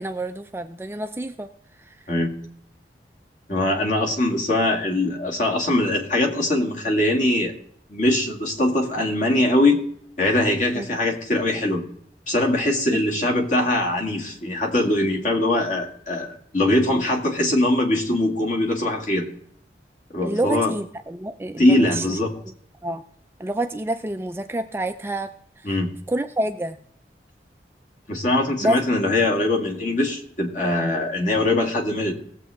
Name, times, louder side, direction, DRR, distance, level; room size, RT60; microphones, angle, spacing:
voice 1, 0.0-1.5 10.7-10.9 20.2-22.1 22.8-23.0 23.4-25.3 25.6-25.8 26.1-26.8 28.6-28.8, right 1 dB, 15° right, 7 dB, 0.4 m, -27 dB
voice 2, 3.5-7.5 7.9-9.8 10.2-11.8 12.3-19.3 20.1-20.7 21.6-22.3 25.7-25.9 28.1-32.1, left 1 dB, 45° left, 0 dB, 2.1 m, -22 dB
18.0 x 7.5 x 3.5 m, 0.63 s
head